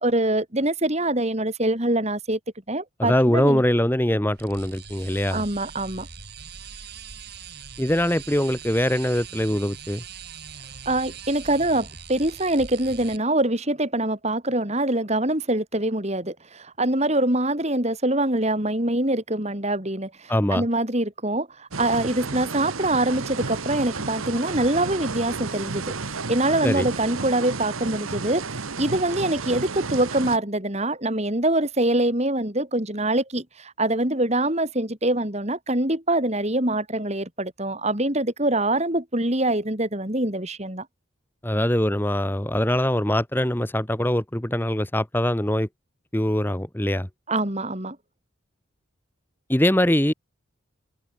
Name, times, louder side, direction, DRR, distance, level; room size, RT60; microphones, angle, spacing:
voice 1, 0.0-2.4 2.7-3.6 5.3-6.1 10.9-40.9 47.3-48.0, right 1 dB, 30° right, 3.5 m, -24 dB
voice 2, 3.0-5.4 7.8-10.0 20.3-20.6 26.6-26.9 41.4-45.7 46.1-47.1 49.5-50.1, left 1 dB, 10° left, 1.3 m, -22 dB
sound 1, 4.3-13.2, right 6 dB, 50° right, 4.6 m, -41 dB
sound 2, 21.7-30.4, right 4 dB, 85° right, 1.4 m, -32 dB
head